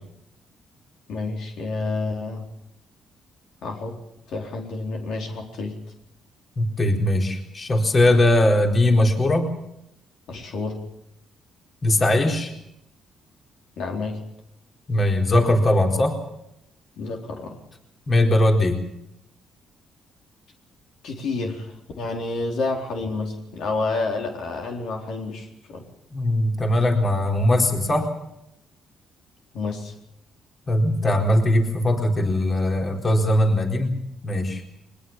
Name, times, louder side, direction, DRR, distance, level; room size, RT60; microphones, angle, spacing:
voice 1, 1.1-2.5 3.6-4.0 4.3-5.8 10.3-10.8 13.8-14.2 17.0-17.6 21.0-25.8 29.5-29.9, left 3 dB, 75° left, 2 dB, 4.2 m, -29 dB
voice 2, 6.6-9.5 11.8-12.5 14.9-16.2 18.1-18.8 26.1-28.1 30.7-33.9 34.2-34.6, left 1 dB, 35° left, 3 dB, 4.3 m, -20 dB
22.5 x 21.0 x 7.4 m, 0.80 s
cardioid pair, 90°, 0 cm